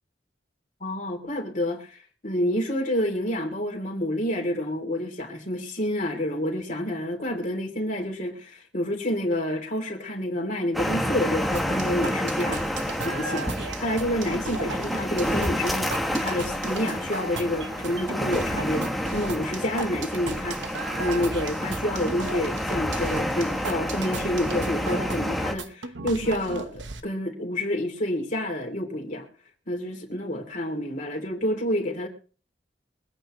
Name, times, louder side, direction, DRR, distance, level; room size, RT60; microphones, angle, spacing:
voice 1, 0.8-13.5 13.8-15.9 16.2-29.3 29.7-32.1, left 1 dB, 45° left, 2.9 m, -28 dB
sound 1, 10.7-25.5, equal, ahead, 1.1 m, -29 dB
sound 2, 11.5-27.0, right 4 dB, 80° right, 1.0 m, -36 dB
23.5 x 8.9 x 3.1 m
head